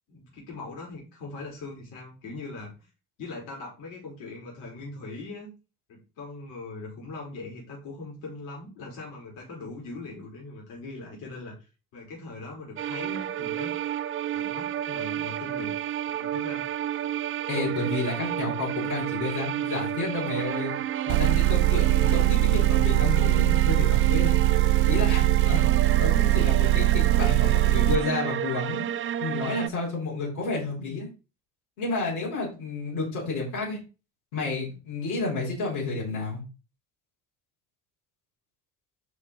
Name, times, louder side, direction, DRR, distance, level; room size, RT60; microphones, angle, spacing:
voice 1, 0.1-2.9 3.2-5.5 5.9-15.8 16.1-17.0 22.1-22.5, left 3 dB, 70° left, -3 dB, 3.7 m, -41 dB
sound 1, 12.8-29.7, right 11 dB, 30° right, 0.4 m, -31 dB
voice 2, 17.5-20.7 21.1-24.3 24.9-25.7 26.0-28.8 29.2-31.1 31.8-33.8 34.3-36.4, left 3 dB, 85° left, -5 dB, 3.8 m, -30 dB
Motor vehicle (road) / Engine, 21.1-28.0, right 16 dB, 70° right, 0.6 m, -21 dB
10.5 x 3.6 x 3.9 m, 0.31 s
hypercardioid pair, 50°, 44 cm